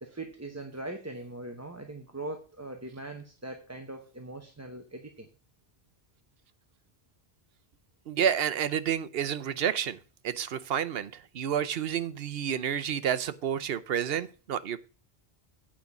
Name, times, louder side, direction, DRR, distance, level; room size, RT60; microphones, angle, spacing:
voice 1, 0.0-5.3, right 2 dB, 15° right, 0.9 m, -41 dB
voice 2, 8.1-10.0 10.2-14.8, right 8 dB, 70° right, 0.9 m, -30 dB
8.8 x 5.2 x 7.0 m
omnidirectional pair, 1.1 m